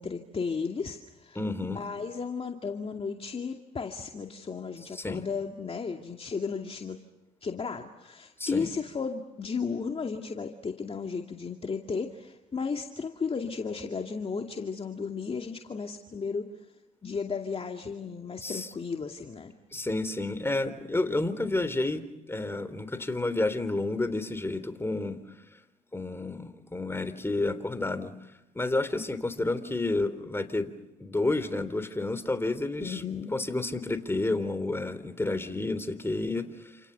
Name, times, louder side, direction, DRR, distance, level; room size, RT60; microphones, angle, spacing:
voice 1, 0.0-1.4 1.7-7.0 7.4-16.5 17.0-19.5 32.8-33.3, left 5 dB, 35° left, 3 dB, 2.4 m, -34 dB
voice 2, 1.4-1.8 4.9-5.2 8.4-8.7 18.4-18.7 19.7-25.2 25.9-28.1 28.6-30.7 31.0-33.0 33.3-36.7, left 2 dB, 15° left, 11 dB, 3.6 m, -30 dB
29.5 x 28.0 x 6.9 m, 0.93 s
hypercardioid pair, 60°, 17 cm